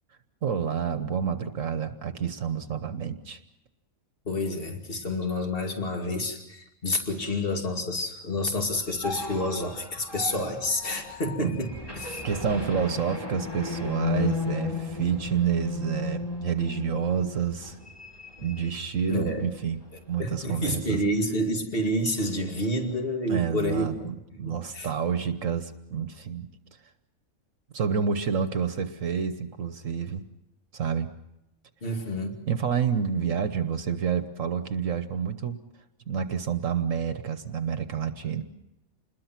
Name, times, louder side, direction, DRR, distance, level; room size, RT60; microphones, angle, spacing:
voice 1, 0.4-3.4 11.4-11.6 12.0-17.8 18.4-19.8 20.1-21.0 23.3-26.5 27.7-30.2 30.7-31.1 32.5-35.6 36.1-38.4, right 7 dB, 70° right, 9 dB, 1.4 m, -29 dB
voice 2, 4.2-12.2 19.1-19.5 20.2-24.9 31.8-32.4, left 1 dB, 40° left, 3 dB, 2.6 m, -29 dB
sound 1, 8.5-19.5 19.8-20.0 20.4-21.1, left 4 dB, 15° left, 2.8 m, -35 dB
28.0 x 21.5 x 5.9 m, 0.88 s
omnidirectional pair, 1.5 m